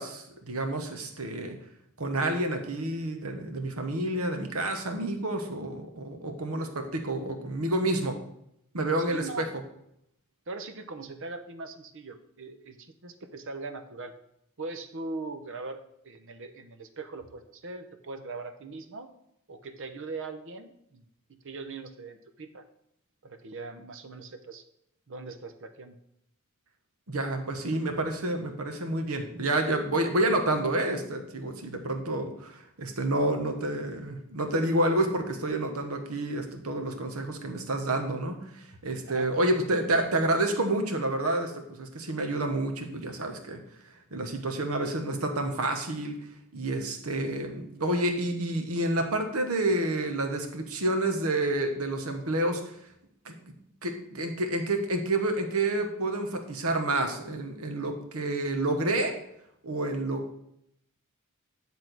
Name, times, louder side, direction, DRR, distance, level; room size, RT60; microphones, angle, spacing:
voice 1, 0.0-1.6 2.0-8.2 8.7-9.5 27.1-46.1 46.5-52.7 53.2-53.3 53.8-59.2 59.6-60.4, right 1 dB, 75° right, 5 dB, 1.3 m, -29 dB
voice 2, 9.1-9.5 10.5-14.1 14.6-19.1 19.5-22.6 23.2-24.6 25.1-26.0 39.1-39.3, right 3 dB, 60° right, 8 dB, 0.9 m, -40 dB
10.0 x 3.7 x 6.1 m, 0.76 s
head